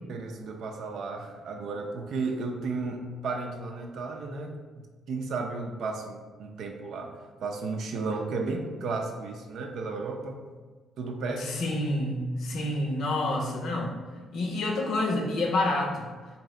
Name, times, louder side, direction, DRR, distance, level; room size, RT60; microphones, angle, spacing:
voice 1, 0.1-7.1 7.4-10.4 11.0-11.6, right 3 dB, 70° right, 3 dB, 0.5 m, -34 dB
voice 2, 11.4-13.9 14.3-16.0, left 2 dB, 70° left, 1 dB, 0.7 m, -28 dB
3.8 x 2.7 x 3.2 m, 1.4 s
cardioid pair, 90°, 0 cm